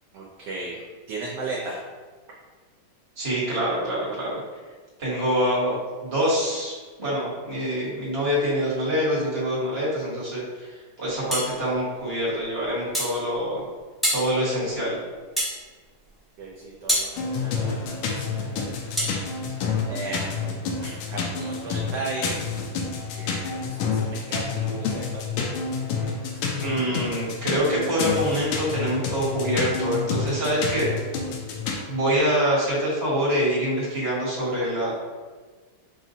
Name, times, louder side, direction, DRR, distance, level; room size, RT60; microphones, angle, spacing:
voice 1, 0.1-0.8 1.1-1.8 16.4-19.6 19.9-22.4 23.2-25.3, right 3 dB, 70° right, -4 dB, 1.1 m, -36 dB
voice 2, 3.2-4.4 5.0-13.6 14.1-15.0 26.6-30.9 31.9-34.9, equal, 35° right, -7 dB, 1.5 m, -25 dB
sound 1, 11.3-11.5 12.9-13.2 14.0-14.3 15.4-15.6 16.9-17.1 19.0-19.2, equal, ahead, 0.3 m, -25 dB
sound 2, 17.2-31.8, left 5 dB, 85° left, 1.4 m, -29 dB
5.7 x 2.4 x 2.7 m, 1.4 s
omnidirectional pair, 2.2 m